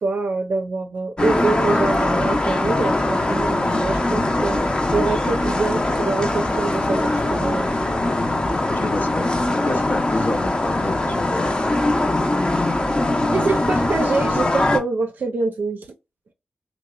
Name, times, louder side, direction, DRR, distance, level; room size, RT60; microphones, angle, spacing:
voice 1, 0.0-7.7 13.3-15.9, right 3 dB, 70° right, 0.4 m, -25 dB
sound 1, 1.2-14.8, left 2 dB, 30° left, 0.6 m, -21 dB
voice 2, 8.5-9.4 9.6-11.8, left 2 dB, 65° left, 0.6 m, -28 dB
2.8 x 2.0 x 2.3 m
cardioid pair, 40°, 3 cm